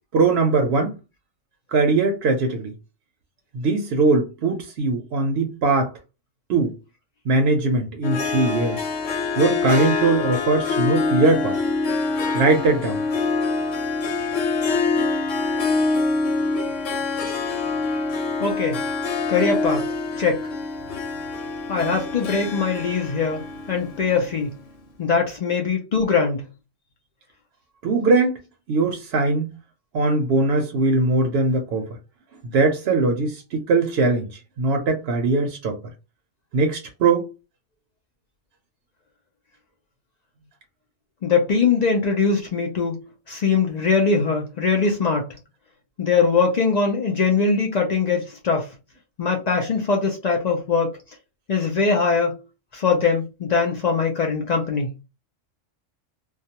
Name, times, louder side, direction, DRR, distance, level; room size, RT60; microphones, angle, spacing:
voice 1, 0.1-0.9 1.7-2.7 3.5-5.9 6.5-6.8 7.3-8.9 9.4-11.6 12.3-13.0 27.8-28.4 28.7-29.5 29.9-32.0 32.4-35.8 36.5-37.3, right 3 dB, 65° right, 0.7 m, -21 dB
Harp, 8.0-24.5, left 3 dB, 85° left, 1.0 m, -25 dB
voice 2, 18.4-18.8 19.3-19.9 20.2-20.5 21.7-24.6 25.0-26.5 41.2-45.3 46.0-48.7 49.2-51.0 51.5-52.4 52.7-54.9, left 5 dB, 65° left, 0.4 m, -22 dB
2.3 x 2.2 x 2.8 m
omnidirectional pair, 1.3 m